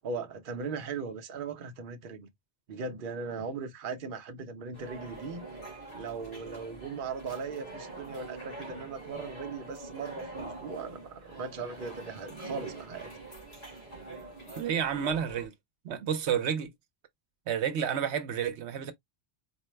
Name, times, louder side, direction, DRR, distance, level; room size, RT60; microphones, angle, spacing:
voice 1, 0.0-2.3 2.7-5.4 5.9-13.1, right 5 dB, 55° right, 0.9 m, -38 dB
sound 1, 4.7-15.5, right 2 dB, 65° left, 2.3 m, -44 dB
voice 2, 14.6-15.5 15.8-16.7 17.5-18.9, right 8 dB, 85° right, 1.0 m, -30 dB
4.5 x 2.1 x 3.1 m
omnidirectional pair, 1.1 m